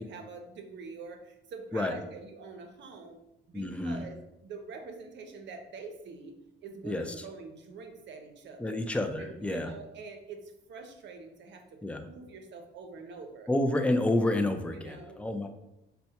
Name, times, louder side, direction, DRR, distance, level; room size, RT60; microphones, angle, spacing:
voice 1, 0.0-3.2 3.5-4.2 4.4-6.3 6.6-8.8 9.2-11.8 12.1-13.5 14.7-15.2, right 4 dB, 65° right, 5 dB, 0.6 m, -45 dB
voice 2, 3.5-4.1 6.8-7.3 8.6-9.7 11.8-12.1 13.5-15.5, left 1 dB, 5° left, 6 dB, 0.3 m, -29 dB
4.3 x 2.1 x 2.8 m, 0.89 s
cardioid pair, 90°, 20 cm